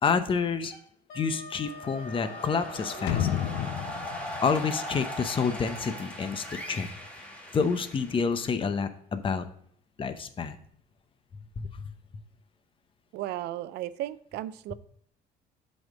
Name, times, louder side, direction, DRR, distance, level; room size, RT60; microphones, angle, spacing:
voice 1, 0.0-0.7 1.1-3.3 4.4-6.9 7.5-9.4 10.0-10.6 11.6-11.7, left 5 dB, 30° left, 9 dB, 0.7 m, -28 dB
Wind instrument woodwind instrument, 0.6-3.7, left 1 dB, 60° left, 2.3 m, -45 dB
sound 1, 1.7-8.6, left 1 dB, 5° left, 1.9 m, -40 dB
sound 2, 3.1-5.9 6.2-6.3, left 11 dB, 85° left, 0.5 m, -32 dB
voice 2, 13.1-14.7, right 13 dB, 80° right, 16 dB, 0.5 m, -35 dB
7.7 x 4.3 x 5.2 m, 0.66 s
cardioid pair, 110°, 17 cm